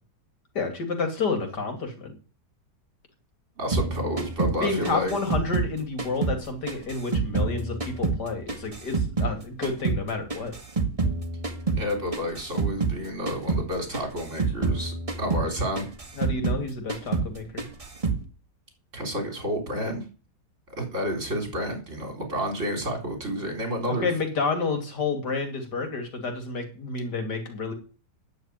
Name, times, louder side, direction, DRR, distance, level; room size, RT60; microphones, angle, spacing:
voice 1, 0.5-2.1 4.6-10.6 16.2-17.7 23.9-27.7, left 4 dB, 90° left, 5 dB, 3.2 m, -30 dB
voice 2, 3.6-5.1 11.8-15.9 18.9-20.0 20.8-24.1, equal, 45° right, 3 dB, 4.4 m, -30 dB
sound 1, 3.7-6.4 6.7-9.4 9.6-13.0 13.3-13.7 13.9-16.6 16.9-17.3 17.6-18.2, right 4 dB, 20° right, 1.5 m, -28 dB
9.6 x 7.4 x 8.9 m, 0.35 s
omnidirectional pair, 1.7 m